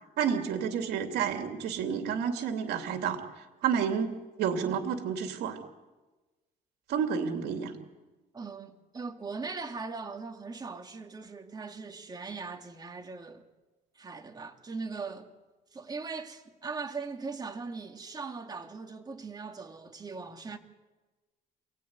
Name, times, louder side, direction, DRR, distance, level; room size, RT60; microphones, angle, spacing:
voice 1, 0.2-5.6 6.9-7.7, right 7 dB, 75° right, 2.8 m, -30 dB
voice 2, 8.3-13.5 13.9-15.3 15.7-20.6, right 4 dB, 25° right, 2.4 m, -40 dB
28.0 x 18.0 x 9.6 m
cardioid pair, 110°, 17 cm